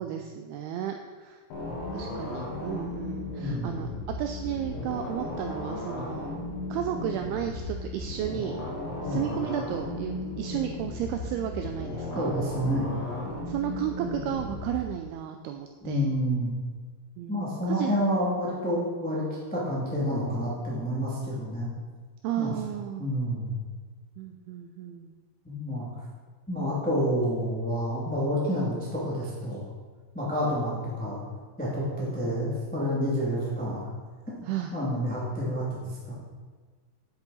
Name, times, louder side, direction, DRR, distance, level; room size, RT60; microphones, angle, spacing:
voice 1, 0.0-1.4 1.9-3.9 4.2-6.3 6.7-8.6 9.0-12.3 13.5-16.1 17.2-18.0 22.2-23.1 24.2-25.1 34.5-34.7, right 10 dB, 85° right, 5 dB, 2.2 m, -33 dB
sound 1, 1.5-14.8, left 2 dB, 65° left, 3.5 m, -35 dB
voice 2, 3.4-3.8 9.0-9.3 12.1-12.9 15.8-16.5 17.3-21.7 22.4-22.5 23.0-23.6 25.4-26.0 26.5-29.6 30.1-31.2 31.6-33.9 34.7-36.1, equal, 10° left, -7 dB, 0.4 m, -29 dB
9.8 x 8.2 x 4.1 m, 1.5 s
omnidirectional pair, 5.0 m